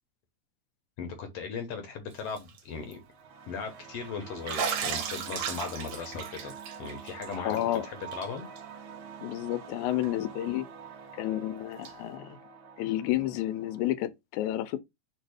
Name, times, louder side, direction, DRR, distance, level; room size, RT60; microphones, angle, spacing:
voice 1, 1.0-3.0 3.5-6.5 6.8-8.5, left 5 dB, 65° left, 1.7 m, -38 dB
Bathtub (filling or washing), 2.2-2.6 2.9-3.0 4.5-7.8 8.1-8.3 8.6-8.7 10.0-10.1 11.8-11.9, right 7 dB, 65° right, 1.8 m, -35 dB
sound 1, 2.9-13.9, right 6 dB, 80° right, 1.1 m, -46 dB
voice 2, 7.4-7.9 9.2-10.7 11.1-12.4 12.8-14.8, left 14 dB, 85° left, 2.0 m, -30 dB
4.5 x 2.5 x 4.8 m
omnidirectional pair, 3.3 m